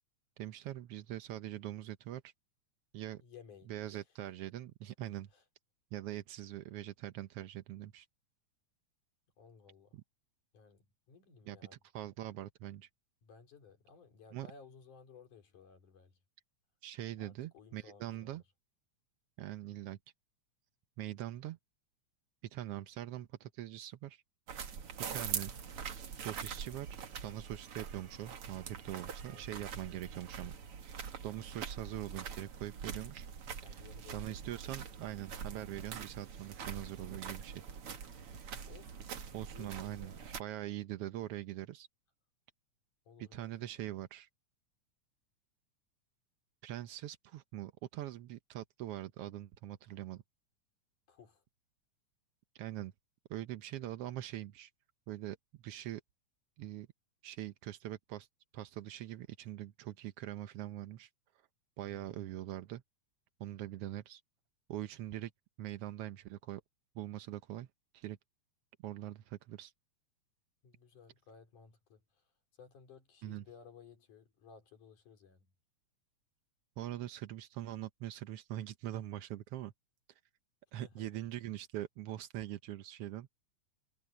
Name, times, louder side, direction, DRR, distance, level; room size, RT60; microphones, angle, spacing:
voice 1, 0.4-2.3 2.9-3.2 3.7-5.3 5.9-8.1 9.9-10.0 11.5-12.9 14.3-14.5 16.8-18.4 19.4-20.0 21.0-21.6 22.4-24.2 25.1-25.5 26.2-26.9 27.2-30.5 31.2-33.3 34.1-37.6 39.3-40.1 40.4-41.9 43.2-44.3 46.6-50.2 52.5-52.9 53.3-54.7 55.1-55.4 55.6-56.0 56.6-56.9 57.2-58.3 58.5-61.1 61.8-62.8 63.4-64.2 64.7-65.3 65.6-66.6 66.9-67.7 67.9-68.2 68.8-69.7 73.2-73.4 76.8-79.7 80.7-83.3, right 13 dB, 75° right, 1.4 m, -43 dB
voice 2, 3.2-4.0 5.3-5.4 9.4-10.0 10.5-11.8 13.2-16.2 17.2-18.4 29.3-29.5 29.9-30.0 33.6-34.4 38.7-39.2 39.5-40.4 43.1-43.9 51.1-51.4 61.9-62.4 70.6-72.0 72.6-75.5 80.7-81.1, left 6 dB, 80° left, 5.1 m, -58 dB
sound 1, 24.5-40.4, right 7 dB, 50° right, 2.4 m, -44 dB
omnidirectional pair, 3.5 m